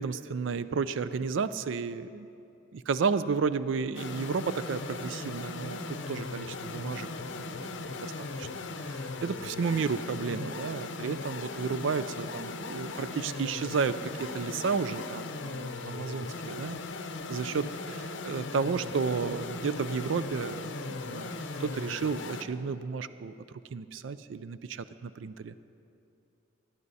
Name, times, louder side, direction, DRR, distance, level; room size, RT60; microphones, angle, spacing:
voice 1, 0.0-2.3 2.7-5.8 6.1-7.7 8.0-8.1 8.4-8.5 8.9-16.8 17.3-21.3 21.6-23.3 23.7-25.5, right 5 dB, 70° right, 14 dB, 0.4 m, -32 dB
sound 1, 3.9-22.4, left 3 dB, 65° left, 0.7 m, -38 dB
17.0 x 11.0 x 4.1 m, 2.7 s
head